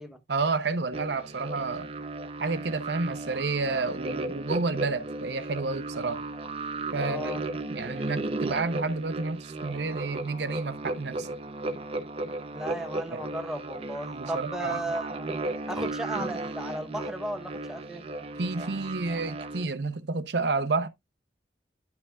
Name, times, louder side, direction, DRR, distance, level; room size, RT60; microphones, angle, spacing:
voice 1, 0.3-1.9 2.4-6.2 6.9-7.3 7.7-11.4 13.1-13.2 14.1-14.8 18.4-20.9, right 3 dB, 75° right, 0.7 m, -30 dB
sound 1, 0.9-19.7, right 2 dB, 30° right, 0.7 m, -35 dB
voice 2, 7.0-7.4 12.5-15.3 15.7-18.1, right 1 dB, 5° right, 0.9 m, -35 dB
10.5 x 5.5 x 2.4 m
head